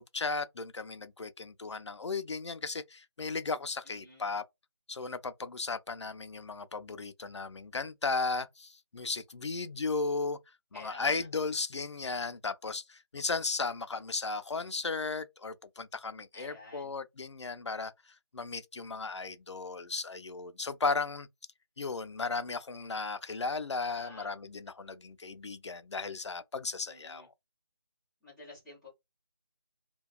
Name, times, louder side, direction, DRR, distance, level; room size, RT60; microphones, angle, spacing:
voice 1, 0.0-4.4 4.9-10.4 10.7-17.9 18.3-21.3 21.8-27.3, left 4 dB, 85° left, 0.4 m, -35 dB
voice 2, 3.8-4.3 10.7-11.3 16.3-16.9 23.8-24.3 26.8-27.3 28.2-28.9, left 2 dB, ahead, 0.4 m, -51 dB
2.8 x 2.2 x 2.2 m
figure-of-eight pair, 160°, 14 cm